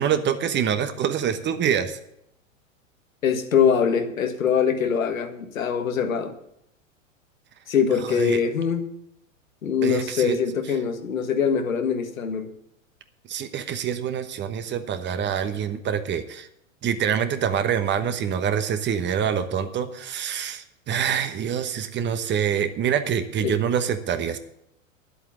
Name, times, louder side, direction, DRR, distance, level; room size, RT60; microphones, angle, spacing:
voice 1, 0.0-2.0 8.1-8.4 9.8-10.4 13.3-16.5 16.8-24.4, right 8 dB, 25° right, 9 dB, 1.2 m, -25 dB
voice 2, 3.2-6.3 7.7-8.9 9.6-12.5 23.4-23.6, left 7 dB, 80° left, 6 dB, 1.7 m, -23 dB
11.0 x 8.3 x 7.3 m, 0.78 s
hypercardioid pair, 100°, 40 cm